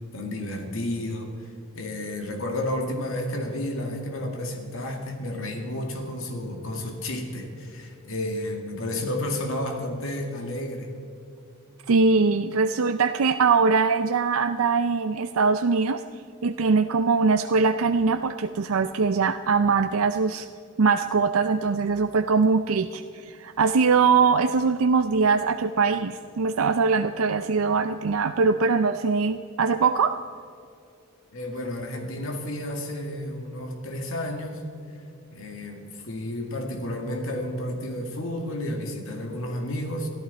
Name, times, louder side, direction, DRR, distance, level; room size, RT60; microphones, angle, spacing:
voice 1, 0.1-1.5 1.7-10.9 31.3-34.6 35.3-40.1, left 1 dB, 75° left, 2 dB, 2.2 m, -31 dB
voice 2, 11.9-16.0 16.4-20.5 20.8-30.2, right 4 dB, 90° right, 9 dB, 0.5 m, -22 dB
23.0 x 14.0 x 4.2 m, 2.6 s
head